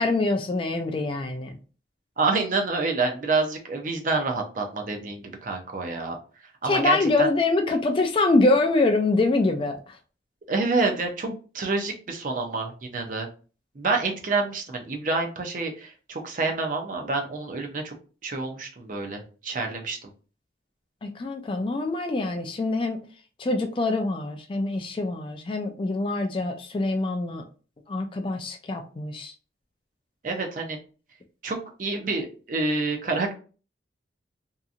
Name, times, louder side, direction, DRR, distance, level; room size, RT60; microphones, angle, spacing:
voice 1, 0.0-1.6 6.7-9.8 21.0-23.0 23.4-27.4 27.9-29.3, left 2 dB, 30° left, 0.3 m, -24 dB
voice 2, 2.2-6.2 6.6-7.3 10.5-13.3 13.7-18.0 18.2-20.1 30.2-30.8 31.4-33.4, right 3 dB, 45° right, 0.5 m, -28 dB
2.8 x 2.5 x 2.4 m
head